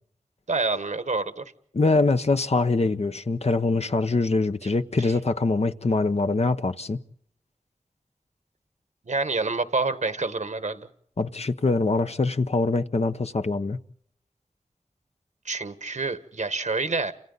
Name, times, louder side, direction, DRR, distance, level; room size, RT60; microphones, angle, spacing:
voice 1, 0.5-1.4 4.6-4.7 9.1-10.9 15.4-17.1, right 3 dB, 80° right, 1.4 m, -27 dB
voice 2, 1.7-7.0 11.2-13.8, left 3 dB, 60° left, 0.9 m, -23 dB
30.0 x 27.0 x 4.0 m
wide cardioid pair, 55°, 12 cm